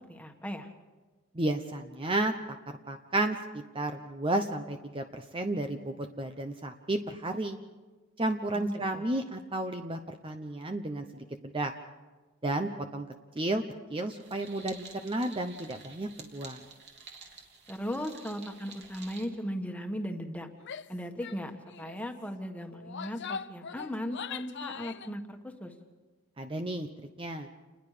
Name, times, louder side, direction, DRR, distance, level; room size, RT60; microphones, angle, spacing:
voice 1, 0.1-0.7 8.5-9.0 17.7-20.5 20.9-25.7, equal, 5° left, 4 dB, 1.7 m, -37 dB
voice 2, 1.3-2.3 2.9-7.6 8.2-11.7 12.4-13.1 13.4-13.6 13.9-16.6 26.4-26.9 27.2-27.5, right 2 dB, 25° right, 6 dB, 0.9 m, -32 dB
sound 1, 14.2-19.3, right 5 dB, 50° right, 3.2 m, -50 dB
Female speech woman speaking / Yell, 20.6-20.9 21.2-21.4 21.7-22.0 22.7-25.1, left 6 dB, 55° left, 0.6 m, -41 dB
29.0 x 20.5 x 5.1 m, 1.2 s
head